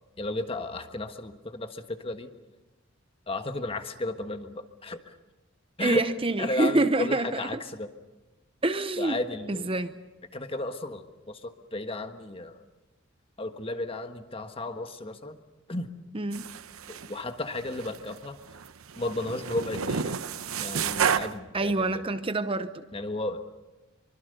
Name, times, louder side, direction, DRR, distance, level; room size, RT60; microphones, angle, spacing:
voice 1, 0.2-2.3 3.3-5.0 5.8-6.1 6.4-7.9 9.0-9.7 10.3-11.0 11.3-12.6 13.4-15.4 15.7-15.9 16.9-18.4 19.0-20.2 20.6-22.0 22.9-23.6, left 2 dB, 25° left, 7 dB, 1.4 m, -34 dB
voice 2, 5.8-7.5 8.6-9.2 9.5-9.9 16.1-16.6 21.5-22.8, right 2 dB, 25° right, 10 dB, 0.7 m, -27 dB
sound 1, 16.3-17.2 17.6-18.2 18.5-21.3, right 7 dB, 90° right, 0.8 m, -31 dB
25.0 x 24.0 x 6.8 m, 1.1 s
head